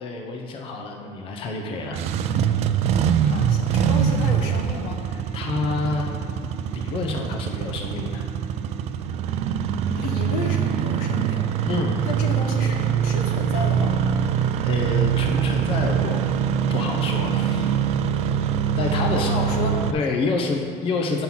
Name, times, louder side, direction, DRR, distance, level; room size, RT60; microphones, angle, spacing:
voice 1, 0.0-2.0 5.1-6.1 6.5-8.2 11.7-12.0 14.6-16.2 16.7-17.8 18.8-19.3 19.6-21.2, left 3 dB, 35° left, 2 dB, 0.7 m, -28 dB
Engine starting, 1.8-19.9, right 8 dB, 45° right, 0.4 m, -23 dB
voice 2, 3.2-5.0 9.9-11.5 12.0-14.0 19.2-19.9, left 4 dB, 85° left, 2 dB, 1.3 m, -32 dB
7.5 x 5.5 x 5.8 m, 2.2 s
cardioid pair, 160°, 15 cm